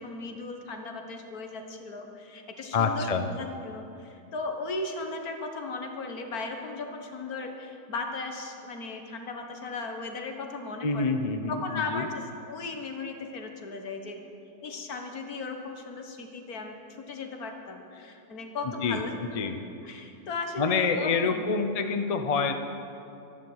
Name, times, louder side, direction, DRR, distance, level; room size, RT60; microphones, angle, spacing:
voice 1, 0.0-11.1 11.5-14.3 14.6-19.5 19.8-21.7, left 3 dB, 65° left, 4 dB, 1.8 m, -37 dB
voice 2, 2.7-3.3 10.8-11.6 11.9-12.1 18.8-19.6 20.6-22.5, left 4 dB, 40° left, 7 dB, 0.5 m, -27 dB
13.0 x 11.0 x 8.0 m, 2.6 s
omnidirectional pair, 1.8 m